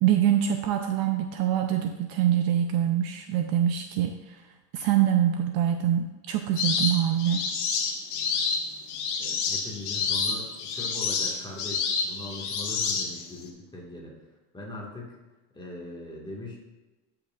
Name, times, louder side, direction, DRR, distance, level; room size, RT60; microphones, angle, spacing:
voice 1, 0.0-4.4 4.7-7.5, right 10 dB, 50° right, 6 dB, 0.6 m, -24 dB
sound 1, 6.6-13.4, left 5 dB, 55° left, 1.3 m, -29 dB
voice 2, 9.2-14.1 14.5-15.2 15.5-16.6, left 1 dB, 10° left, -3 dB, 1.6 m, -40 dB
11.5 x 5.8 x 2.4 m, 1.1 s
supercardioid pair, 130°, 49 cm